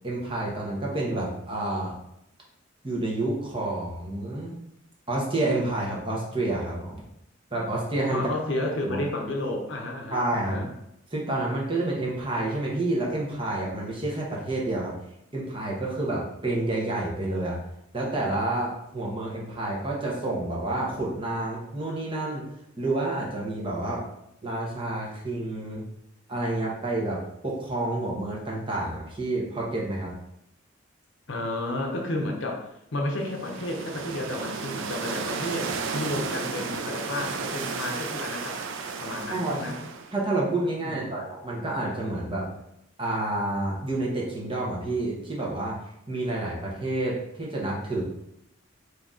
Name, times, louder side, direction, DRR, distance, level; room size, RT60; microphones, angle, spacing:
voice 1, 0.0-1.9 2.8-4.6 5.1-7.0 7.5-8.3 8.9-9.0 10.1-10.6 11.1-14.9 15.3-17.6 17.9-22.4 22.8-24.0 24.4-25.8 26.3-27.2 27.4-30.1 39.3-39.6 40.1-42.5 43.0-45.8 46.1-48.0, right 2 dB, 25° right, -4 dB, 1.0 m, -29 dB
voice 2, 8.1-10.7 31.3-32.7 32.9-38.6 39.0-39.8 40.8-41.2, left 1 dB, 65° left, 1 dB, 0.7 m, -32 dB
sound 1, 33.1-40.2, right 4 dB, 65° right, 0.4 m, -33 dB
3.9 x 2.8 x 3.6 m, 0.79 s
head